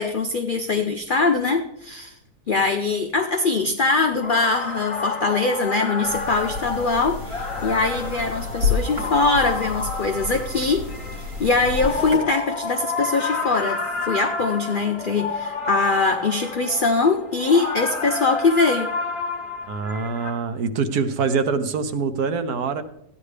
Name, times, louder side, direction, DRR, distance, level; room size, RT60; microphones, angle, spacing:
voice 1, 0.0-2.1 2.5-10.8 11.4-18.9, left 3 dB, 75° left, 5 dB, 0.4 m, -22 dB
sound 1, 4.0-20.3, left 4 dB, 20° left, 1.3 m, -30 dB
sound 2, 6.0-12.2, left 4 dB, 90° right, 3.4 m, -30 dB
voice 2, 19.7-22.8, right 5 dB, 70° right, 9 dB, 1.3 m, -24 dB
14.5 x 9.6 x 3.3 m, 0.78 s
omnidirectional pair, 1.7 m